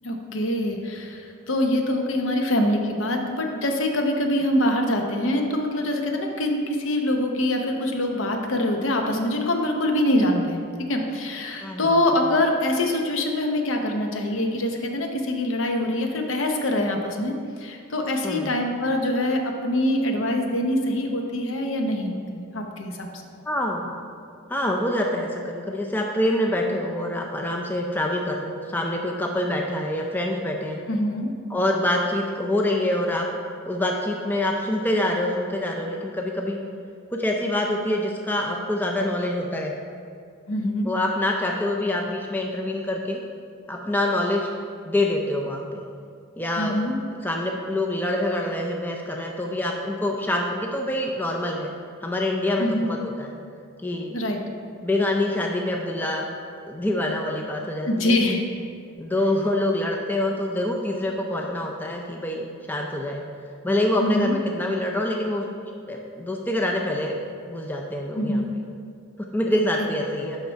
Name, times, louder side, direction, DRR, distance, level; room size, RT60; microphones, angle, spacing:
voice 1, 0.0-23.1 30.9-31.3 40.5-40.9 46.6-46.9 52.6-52.9 54.1-54.4 57.9-58.4 64.0-64.3 68.2-68.5, left 1 dB, 60° left, 3 dB, 0.8 m, -24 dB
voice 2, 11.6-12.0 18.2-18.6 23.5-24.0 24.5-30.8 31.5-33.3 33.7-36.6 37.1-39.7 40.8-43.2 43.7-44.5 44.9-45.8 46.4-46.8 47.2-51.7 52.0-53.4 53.8-54.2 54.8-56.3 56.7-58.2 59.0-63.2 63.6-65.5 65.9-67.2 67.5-68.4 69.2-70.4, left 1 dB, 10° left, 0 dB, 0.4 m, -26 dB
6.6 x 5.8 x 4.6 m, 2.3 s
head